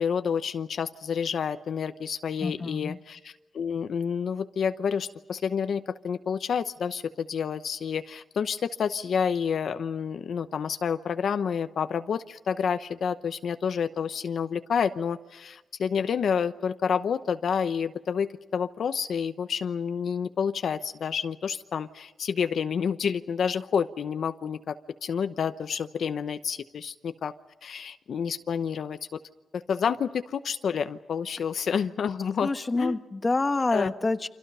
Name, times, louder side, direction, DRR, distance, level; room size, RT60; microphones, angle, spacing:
voice 1, 0.0-27.3 27.6-29.2 29.5-33.0 33.7-33.9, left 7 dB, 70° left, 10 dB, 0.9 m, -29 dB
voice 2, 2.4-3.0 32.4-34.3, left 3 dB, 25° left, 9 dB, 1.3 m, -27 dB
29.5 x 26.5 x 5.6 m, 1.1 s
wide cardioid pair, 130°, 0 cm